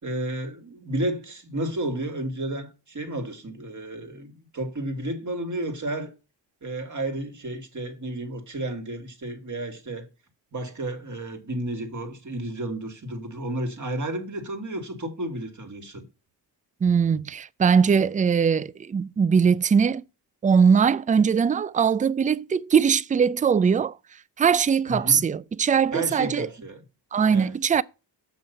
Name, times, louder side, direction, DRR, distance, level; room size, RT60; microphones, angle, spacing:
voice 1, 0.0-6.1 6.6-10.1 10.5-16.0 24.9-25.2 25.9-26.8 27.3-27.5, right 1 dB, 40° right, 2.4 m, -32 dB
voice 2, 16.8-20.0 20.4-24.0 24.4-26.5 27.1-27.8, right 6 dB, 20° right, 0.3 m, -21 dB
7.0 x 5.7 x 5.8 m
cardioid pair, 75°, 44 cm